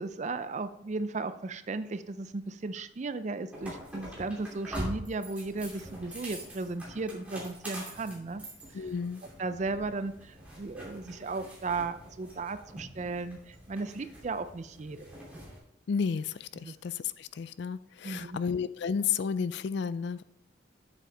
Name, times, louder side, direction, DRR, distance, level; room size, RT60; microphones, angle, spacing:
voice 1, 0.0-8.4 9.4-15.1 16.6-16.7 18.0-18.4, right 3 dB, 35° right, 12 dB, 0.4 m, -35 dB
sound 1, 3.5-15.6, equal, 5° right, 2.6 m, -44 dB
voice 2, 8.7-9.2 15.9-20.2, left 6 dB, 55° left, 16 dB, 0.3 m, -32 dB
8.4 x 7.7 x 3.4 m, 0.77 s
head